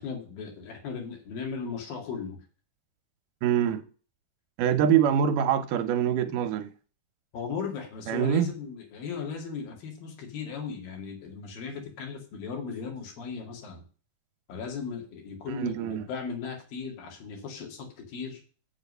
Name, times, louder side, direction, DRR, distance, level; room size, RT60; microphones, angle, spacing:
voice 1, 0.0-2.4 7.3-13.8 14.5-18.4, left 5 dB, 80° left, 4.0 m, -37 dB
voice 2, 3.4-3.8 4.6-6.7 8.1-8.5 15.5-16.1, right 9 dB, 75° right, 2.2 m, -24 dB
8.0 x 7.1 x 5.4 m
omnidirectional pair, 4.0 m